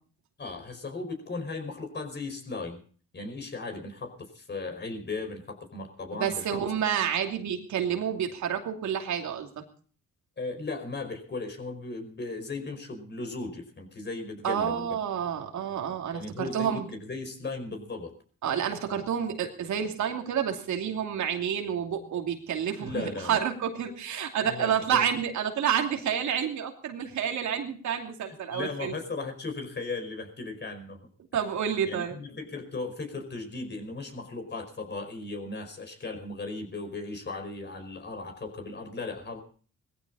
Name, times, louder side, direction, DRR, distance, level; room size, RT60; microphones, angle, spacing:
voice 1, 0.4-2.8 3.1-6.6 10.4-14.9 16.1-18.2 22.8-23.4 24.4-25.1 28.5-31.1 31.8-39.4, left 3 dB, 35° left, 6 dB, 5.2 m, -37 dB
voice 2, 6.2-9.6 14.4-16.9 18.4-29.0 31.3-32.2, right 8 dB, 70° right, 3 dB, 2.8 m, -29 dB
19.0 x 15.0 x 4.1 m, 0.43 s
cardioid pair, 90°, 30 cm